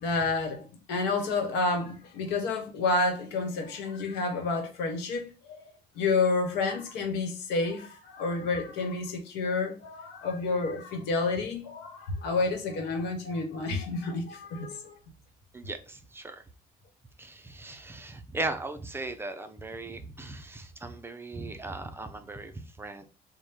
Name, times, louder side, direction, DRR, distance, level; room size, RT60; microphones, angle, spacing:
voice 1, 0.0-5.7 5.9-14.9, left 3 dB, 85° left, 1.0 m, -30 dB
voice 2, 15.5-16.4 17.2-23.1, right 2 dB, 15° right, 0.5 m, -38 dB
3.4 x 2.1 x 4.3 m
cardioid pair, 110°, 17 cm